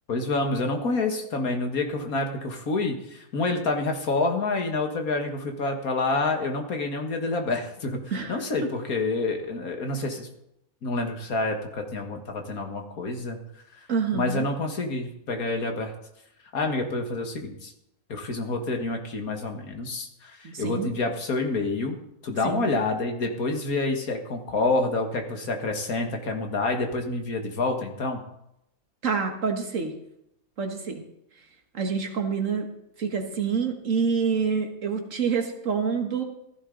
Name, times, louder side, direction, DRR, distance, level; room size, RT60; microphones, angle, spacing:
voice 1, 0.1-10.3 10.8-13.4 14.1-15.9 16.5-17.7 18.1-22.0 22.2-28.2, left 3 dB, 75° left, 4 dB, 2.1 m, -28 dB
voice 2, 8.1-8.4 13.9-14.4 20.4-20.9 22.4-22.7 29.0-30.0 30.6-31.0 31.7-32.7 33.0-36.2, right 5 dB, 60° right, 4 dB, 1.9 m, -27 dB
15.0 x 14.5 x 3.9 m, 0.81 s
omnidirectional pair, 1.6 m